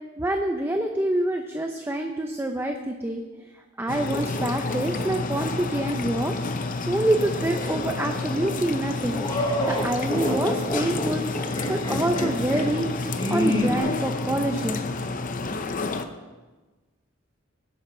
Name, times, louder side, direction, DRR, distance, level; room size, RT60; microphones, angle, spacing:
voice 1, 0.2-3.2 3.8-6.3 6.9-9.2 9.7-11.2 11.7-14.8, right 1 dB, 10° right, 4 dB, 0.7 m, -26 dB
sound 1, 3.9-16.1, left 3 dB, 40° left, 0.7 m, -30 dB
sound 2, 3.9-5.5 5.9-6.0 7.1-13.8, left 1 dB, 25° left, 1.3 m, -30 dB
18.0 x 10.5 x 3.9 m, 1.3 s
head